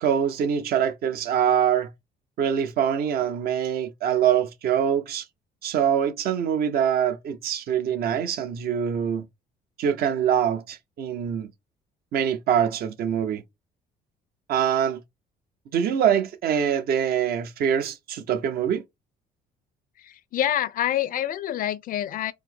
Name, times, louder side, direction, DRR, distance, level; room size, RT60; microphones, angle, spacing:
voice 1, 0.0-1.9 2.4-5.3 5.6-9.3 9.8-11.5 12.1-13.4 14.5-15.0 15.7-18.8, right 8 dB, 65° right, 0.8 m, -24 dB
voice 2, 20.0-22.3, left 11 dB, 55° left, 0.5 m, -27 dB
4.5 x 2.0 x 4.2 m
cardioid pair, 110°, 17 cm